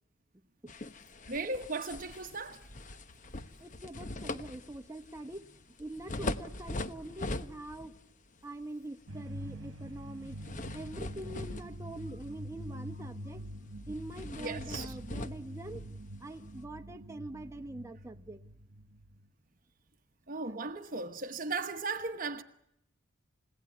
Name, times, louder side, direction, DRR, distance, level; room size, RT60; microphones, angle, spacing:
sound 1, 0.7-8.0 8.4-8.6 10.2-12.4 12.8-13.0 13.3-13.4 13.9-16.6, left 2 dB, 35° left, 1.0 m, -41 dB
voice 1, 1.3-2.6 14.4-15.0 20.3-22.4, right 3 dB, 40° right, 1.0 m, -37 dB
voice 2, 3.6-5.4 5.8-7.9 8.4-10.4 10.7-13.4 13.9-15.8 16.2-18.4, right 1 dB, 15° right, 1.0 m, -44 dB
sound 2, 9.1-19.3, right 1 dB, 65° right, 1.1 m, -45 dB
30.0 x 17.5 x 9.6 m
head